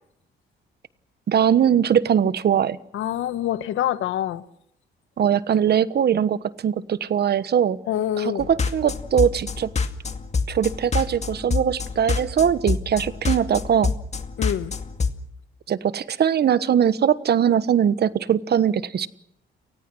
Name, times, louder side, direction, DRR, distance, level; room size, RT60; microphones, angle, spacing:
voice 1, 1.3-2.8 5.2-7.8 8.2-9.7 10.5-13.9 15.7-19.1, right 8 dB, 55° right, 15 dB, 1.2 m, -21 dB
voice 2, 2.9-4.4 7.9-8.5 14.4-14.7, left 11 dB, 80° left, 13 dB, 1.4 m, -26 dB
sound 1, 8.4-15.1, left 4 dB, 35° left, 2.2 m, -26 dB
30.0 x 19.5 x 6.3 m, 0.76 s
cardioid pair, 90°, 20 cm